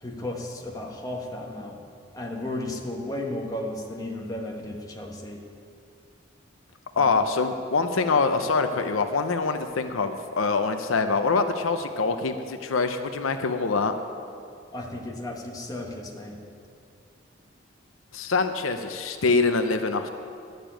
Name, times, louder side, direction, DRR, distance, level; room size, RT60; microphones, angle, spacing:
voice 1, 0.0-1.9 2.1-5.4 6.9-7.1 14.7-16.4, left 1 dB, 20° left, 0 dB, 1.3 m, -34 dB
voice 2, 7.0-13.9 18.1-20.1, left 4 dB, 90° left, 8 dB, 0.7 m, -24 dB
12.0 x 6.7 x 9.0 m, 2.4 s
head